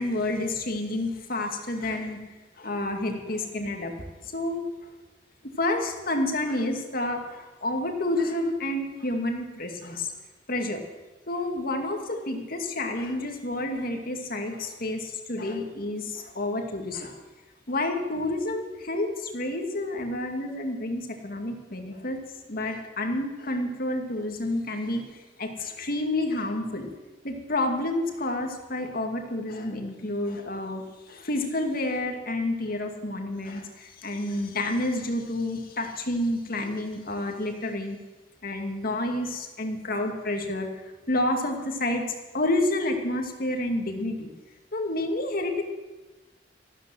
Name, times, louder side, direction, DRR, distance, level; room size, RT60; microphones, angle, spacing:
voice 1, 0.0-2.2 2.6-3.9 4.2-4.9 5.6-10.1 10.5-10.8 11.3-17.2 17.7-22.2 22.5-26.9 27.2-38.0 38.4-40.7 41.1-42.1 42.3-44.3 44.7-45.6, left 1 dB, 50° left, 3 dB, 2.4 m, -29 dB
14.5 x 12.5 x 7.8 m, 1.2 s
head